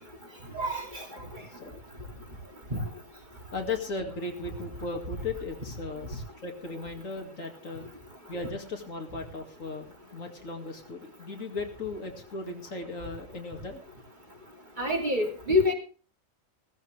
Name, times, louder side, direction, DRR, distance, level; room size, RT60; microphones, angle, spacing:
voice 1, 0.5-1.0 2.7-2.8 14.8-15.7, left 2 dB, 35° right, 1 dB, 3.1 m, -26 dB
voice 2, 1.5-1.8 3.5-7.8 8.3-13.8, left 3 dB, 70° left, 3 dB, 2.7 m, -37 dB
16.5 x 14.5 x 3.4 m, 0.38 s
omnidirectional pair, 1.4 m